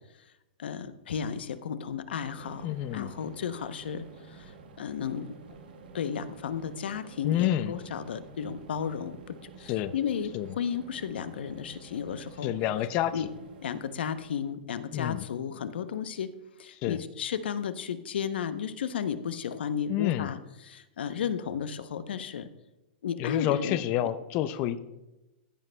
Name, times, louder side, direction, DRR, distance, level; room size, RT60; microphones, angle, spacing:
voice 1, 0.6-5.3 5.9-12.5 13.1-13.3 13.6-16.3 16.6-22.5 23.0-23.8, left 7 dB, 85° left, 12 dB, 0.8 m, -34 dB
sound 1, 2.2-14.5, right 4 dB, 65° right, 1.4 m, -50 dB
voice 2, 2.6-3.1 7.2-7.8 9.7-9.9 10.3-10.5 12.4-13.3 14.9-15.2 16.8-17.0 19.9-20.3 23.2-24.8, left 12 dB, 25° left, 12 dB, 0.4 m, -28 dB
15.0 x 9.2 x 2.2 m, 0.98 s
supercardioid pair, 170°, 5 cm